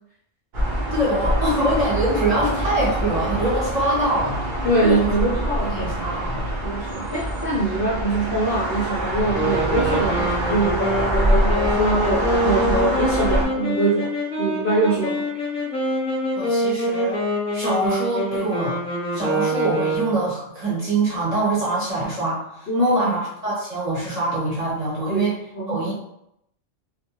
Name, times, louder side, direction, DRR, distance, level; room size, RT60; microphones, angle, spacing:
sound 1, 0.5-13.5, right 1 dB, 55° right, 0.6 m, -25 dB
voice 1, 0.8-4.4 4.8-5.1 5.6-6.5 16.3-17.2 17.5-18.8 19.1-25.3 25.7-25.9, right 1 dB, 35° right, -7 dB, 0.8 m, -24 dB
voice 2, 4.6-5.9 6.6-14.1 14.4-15.3 22.7-23.1 25.1-25.9, right 2 dB, 60° left, -5 dB, 0.6 m, -23 dB
sound 2, 9.3-20.3, equal, 5° left, 0.8 m, -25 dB
2.2 x 2.2 x 3.0 m, 0.77 s
omnidirectional pair, 1.3 m